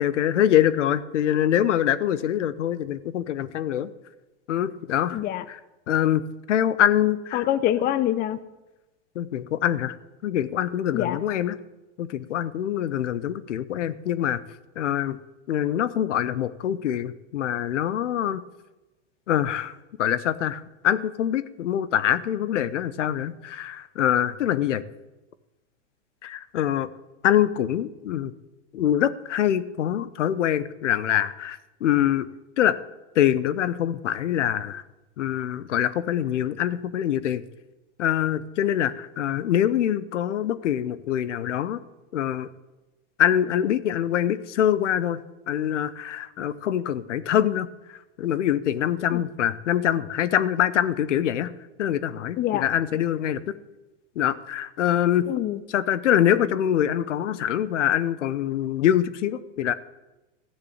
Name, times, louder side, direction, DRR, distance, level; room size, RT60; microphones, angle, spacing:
voice 1, 0.0-3.9 4.5-5.2 5.5-5.6 5.9-7.5 9.1-10.0 10.2-11.6 12.0-14.4 14.8-15.2 15.5-18.4 19.3-19.7 20.0-24.8 26.2-26.9 27.2-28.3 28.7-32.3 32.6-32.8 33.1-34.8 35.2-37.4 38.0-41.8 42.1-42.5 43.2-45.2 45.5-47.7 48.2-51.5 51.8-53.6 54.2-55.3 55.7-59.7, left 10 dB, 80° left, 16 dB, 1.0 m, -24 dB
voice 2, 5.1-5.4 7.3-8.4 10.9-11.2 49.1-49.2 52.4-52.6 55.3-55.6, left 12 dB, 25° left, 14 dB, 0.6 m, -25 dB
14.5 x 6.8 x 8.6 m, 1.0 s
hypercardioid pair, 120°, 36 cm